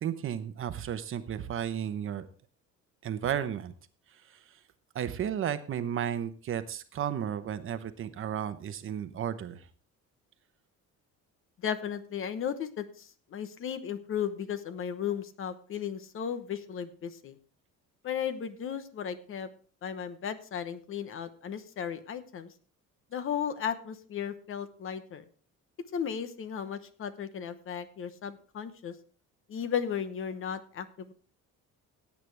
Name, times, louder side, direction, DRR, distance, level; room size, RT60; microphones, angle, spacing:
voice 1, 0.0-2.3 3.0-3.7 4.3-4.4 4.9-9.6, right 9 dB, 45° right, 11 dB, 0.9 m, -33 dB
voice 2, 11.6-17.4 18.0-19.5 19.8-22.5 23.1-25.2 25.9-28.9 29.5-31.1, left 8 dB, 45° left, 12 dB, 0.9 m, -35 dB
17.0 x 8.5 x 3.4 m, 0.40 s
cardioid pair, 165°, 30 cm